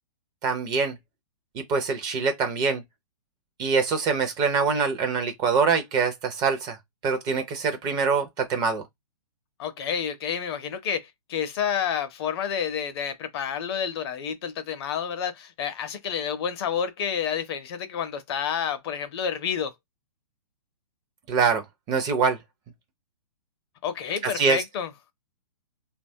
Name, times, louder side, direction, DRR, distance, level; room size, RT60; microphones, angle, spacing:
voice 1, 0.4-0.9 1.5-2.8 3.6-6.8 7.0-8.8 21.3-22.4 24.2-24.6, right 5 dB, 20° right, 0.4 m, -24 dB
voice 2, 9.6-19.7 23.8-24.9, left 8 dB, 40° left, 0.5 m, -29 dB
2.9 x 2.2 x 2.6 m
hypercardioid pair, 140°, 20 cm